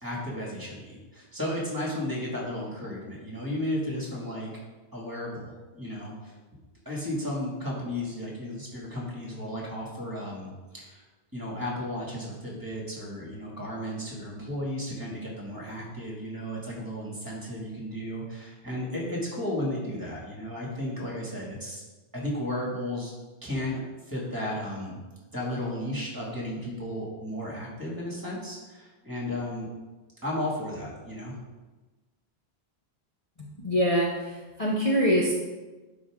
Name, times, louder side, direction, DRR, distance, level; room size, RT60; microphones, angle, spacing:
voice 1, 0.0-4.5 4.9-6.3 6.9-11.0 11.3-21.8 22.1-23.1 23.4-23.8 24.0-25.0 25.3-29.7 30.2-31.3, left 1 dB, 20° right, -4 dB, 2.3 m, -34 dB
voice 2, 33.4-35.3, equal, 35° left, -3 dB, 1.0 m, -25 dB
11.5 x 5.0 x 3.7 m, 1.2 s
omnidirectional pair, 1.1 m